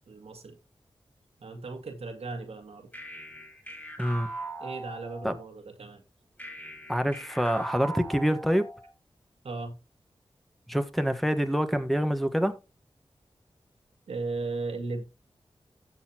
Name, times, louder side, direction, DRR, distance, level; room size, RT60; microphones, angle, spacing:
voice 1, 0.1-0.6 1.4-2.9 4.6-6.0 9.4-9.8 14.1-15.0, right 3 dB, 85° right, 1.8 m, -36 dB
sound 1, 2.9-5.4 6.4-8.9, right 1 dB, 20° left, 5.5 m, -40 dB
voice 2, 6.9-8.7 10.7-12.6, equal, ahead, 1.4 m, -26 dB
15.0 x 6.5 x 3.0 m
cardioid pair, 45°, 10 cm